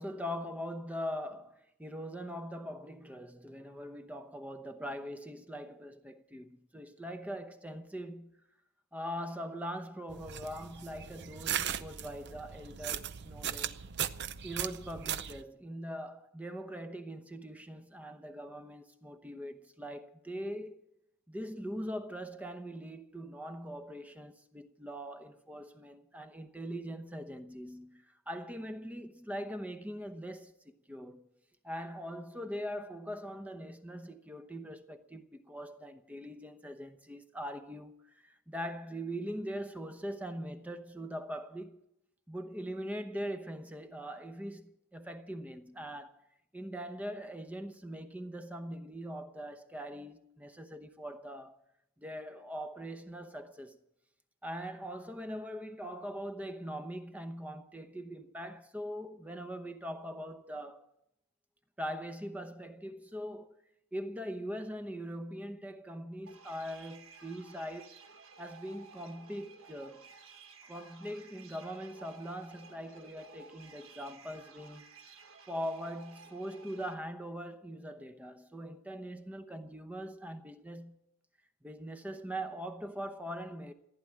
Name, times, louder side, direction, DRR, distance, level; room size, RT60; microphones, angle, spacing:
voice 1, 0.0-8.4 8.9-13.8 14.4-20.8 21.3-31.3 31.6-41.8 42.3-46.2 46.5-51.6 52.0-53.8 54.4-60.9 61.8-63.6 63.9-68.0 68.4-70.1 70.6-75.2 75.5-81.0 81.6-83.7, equal, 5° right, 0.9 m, -42 dB
sound 1, 10.1-15.4, right 9 dB, 55° right, 0.6 m, -38 dB
sound 2, 66.3-76.9, right 4 dB, 80° right, 1.7 m, -55 dB
15.0 x 9.6 x 8.7 m
head